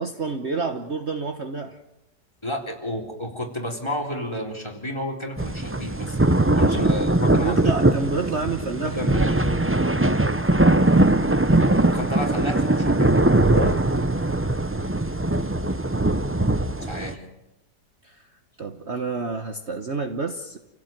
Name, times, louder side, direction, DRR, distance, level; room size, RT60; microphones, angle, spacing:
voice 1, 0.0-1.8 6.5-7.0 7.2-9.0 9.4-9.6 13.5-13.8 18.0-18.3 18.6-20.6, right 4 dB, 45° right, 7 dB, 1.4 m, -29 dB
voice 2, 2.4-6.2 6.5-7.8 8.8-9.4 11.8-13.1 16.8-17.2, equal, 15° left, 3 dB, 3.8 m, -31 dB
sound 1, 5.4-17.1, right 2 dB, 15° right, 0.5 m, -21 dB
29.0 x 16.5 x 9.2 m, 0.92 s
omnidirectional pair, 1.8 m